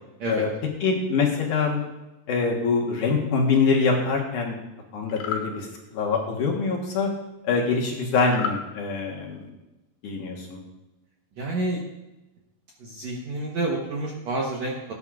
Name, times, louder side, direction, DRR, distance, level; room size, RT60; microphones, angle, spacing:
voice 1, 0.8-1.8 2.3-4.6 4.9-7.1 7.4-9.5 10.0-10.6, left 4 dB, 65° left, -1 dB, 2.5 m, -24 dB
sound 1, 5.1-5.5 8.3-8.6, left 7 dB, 80° left, 3.2 m, -30 dB
voice 2, 11.4-11.8 12.8-14.9, right 2 dB, 65° right, -2 dB, 1.8 m, -29 dB
18.0 x 9.6 x 2.5 m, 1.0 s
omnidirectional pair, 4.5 m